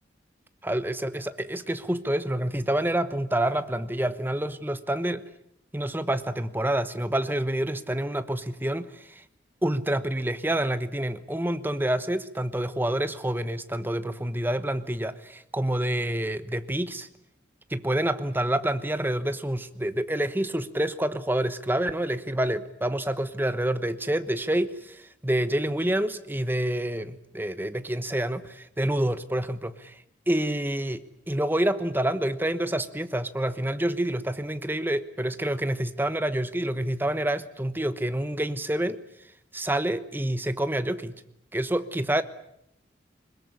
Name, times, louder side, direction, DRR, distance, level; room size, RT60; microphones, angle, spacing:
voice 1, 0.6-5.2 5.7-9.2 9.6-17.1 17.7-30.0 30.3-39.0 39.5-41.1 41.5-42.2, right 1 dB, 10° right, 12 dB, 1.1 m, -28 dB
21.5 x 21.0 x 9.9 m, 0.72 s
head